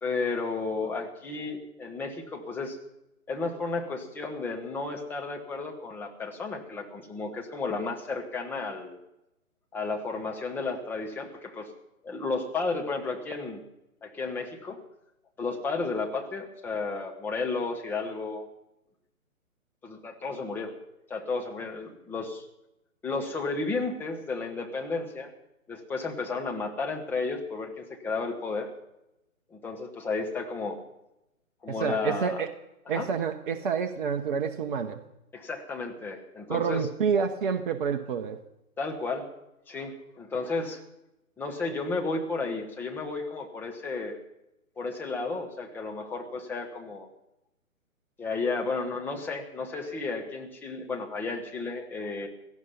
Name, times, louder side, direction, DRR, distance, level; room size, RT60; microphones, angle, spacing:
voice 1, 0.0-2.8 3.3-9.0 9.7-11.7 12.0-13.6 14.0-14.8 15.4-18.5 19.8-20.7 21.1-22.5 23.0-25.3 25.7-28.7 29.5-30.8 31.6-32.4 32.9-33.1 35.3-36.9 38.8-39.3 39.7-40.8 41.4-44.2 44.8-47.1 48.2-52.3, left 3 dB, 5° left, 2 dB, 1.0 m, -33 dB
voice 2, 31.8-32.5 32.9-35.0 36.5-38.4, right 6 dB, 35° right, 6 dB, 1.0 m, -28 dB
17.5 x 14.0 x 5.6 m, 0.87 s
figure-of-eight pair, 140°, 43 cm